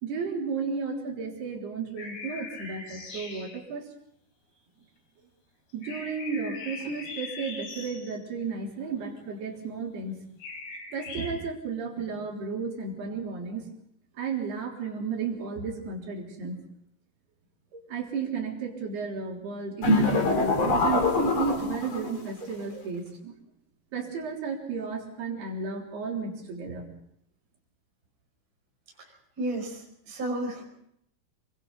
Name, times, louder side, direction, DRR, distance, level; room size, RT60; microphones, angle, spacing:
voice 1, 0.0-3.9 5.7-10.2 10.9-13.6 14.2-16.6 17.7-23.4 23.9-26.9, right 5 dB, 60° right, -1 dB, 5.5 m, -33 dB
sound 1, 2.0-3.6 5.8-8.2 10.4-11.3, left 4 dB, 80° left, 6.2 m, -40 dB
sound 2, 19.8-22.2, left 2 dB, 40° left, 3.7 m, -24 dB
voice 2, 29.4-29.8 30.1-30.7, right 1 dB, 20° right, -2 dB, 5.6 m, -31 dB
27.0 x 24.0 x 4.1 m, 0.73 s
omnidirectional pair, 5.2 m